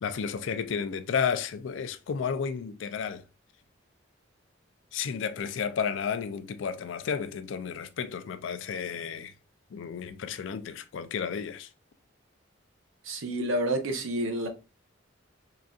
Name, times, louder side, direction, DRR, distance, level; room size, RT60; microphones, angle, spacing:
voice 1, 0.0-3.2 4.9-9.3 9.7-11.7, left 6 dB, 70° left, 0.4 m, -32 dB
voice 2, 13.0-14.5, right 1 dB, 90° right, 0.7 m, -29 dB
3.9 x 2.5 x 2.2 m
head